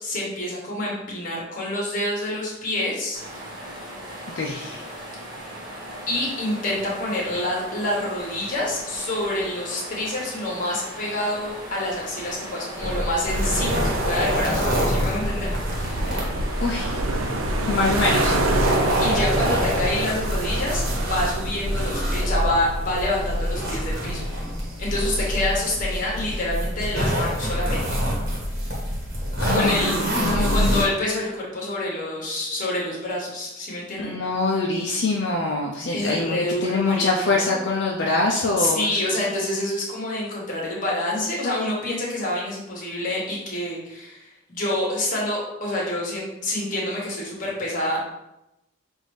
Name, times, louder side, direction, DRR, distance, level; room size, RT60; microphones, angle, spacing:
voice 1, 0.0-3.2 6.1-15.5 19.0-20.8 21.1-24.4 24.8-27.8 29.5-29.9 30.3-34.1 35.9-37.6 38.6-48.0, left 1 dB, 40° left, -4 dB, 1.3 m, -27 dB
sound 1, 3.1-20.2, equal, 20° right, 1.2 m, -38 dB
voice 2, 4.3-4.8 16.6-17.0 17.7-18.4 29.4-30.8 34.0-38.9, left 3 dB, 60° left, -2 dB, 0.5 m, -24 dB
sound 2, 12.8-30.8, equal, 50° right, 1.3 m, -26 dB
sound 3, 13.3-24.1, right 2 dB, 90° right, 0.5 m, -28 dB
5.9 x 2.6 x 3.2 m, 0.89 s
head